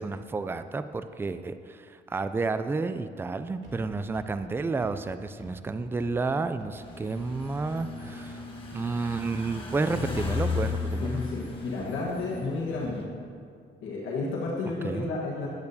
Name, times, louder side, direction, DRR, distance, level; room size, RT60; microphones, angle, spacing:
voice 1, 0.0-8.4 8.7-11.2 14.8-15.1, right 3 dB, 10° right, 11 dB, 0.3 m, -31 dB
sound 1, 3.6-3.7 4.1-4.2 4.8-4.9 5.4-5.5 6.0-6.1 6.6-6.7 7.2-7.3 7.8-7.9 8.3-8.4 8.9-9.0 9.4-9.7 10.0-10.1 10.6-10.7 11.2-11.3 11.7-11.9 12.3-12.4 12.8-12.9, right 1 dB, 70° right, 1.7 m, -49 dB
sound 2, 6.8-13.0, left 4 dB, 25° left, 1.4 m, -35 dB
voice 2, 11.0-13.1 13.8-15.5, left 3 dB, 85° left, -5 dB, 1.3 m, -31 dB
10.5 x 8.5 x 2.7 m, 2.3 s
cardioid pair, 90°, 20 cm